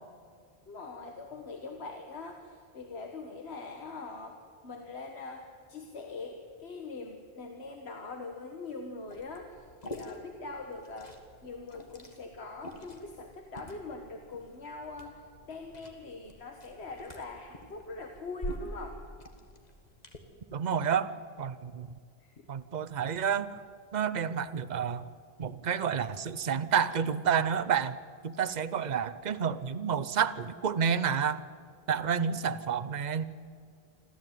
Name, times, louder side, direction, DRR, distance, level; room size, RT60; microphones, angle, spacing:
voice 1, 0.7-4.4 4.6-11.2 11.4-19.0 22.2-22.4, left 3 dB, 90° left, 4 dB, 1.7 m, -42 dB
Liquid, 9.1-20.2, equal, 40° left, 2.0 m, -47 dB
voice 2, 20.5-22.0 22.5-23.6 23.9-25.0 25.4-28.0 28.2-31.4 31.9-33.3, right 7 dB, 45° right, 13 dB, 0.8 m, -30 dB
26.0 x 14.0 x 9.2 m, 2.1 s
omnidirectional pair, 1.1 m